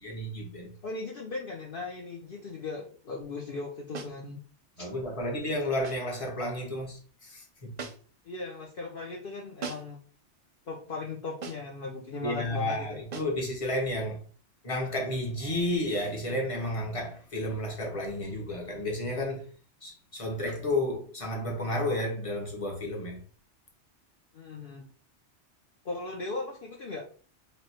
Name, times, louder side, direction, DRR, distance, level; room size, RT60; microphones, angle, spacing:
voice 1, 0.0-0.7 4.8-7.7 12.2-14.2 14.6-19.5 19.8-23.2, left 1 dB, 30° left, 1.2 m, -32 dB
voice 2, 0.8-4.4 4.8-4.9 8.2-10.0 10.7-13.0 24.3-24.9 25.8-27.1, left 3 dB, 55° left, 0.9 m, -38 dB
sound 1, 3.9-4.2 5.8-6.1 7.8-8.2 9.6-10.0 11.4-11.8 13.1-13.4, right 5 dB, 45° right, 0.7 m, -41 dB
3.3 x 2.7 x 4.2 m
omnidirectional pair, 1.2 m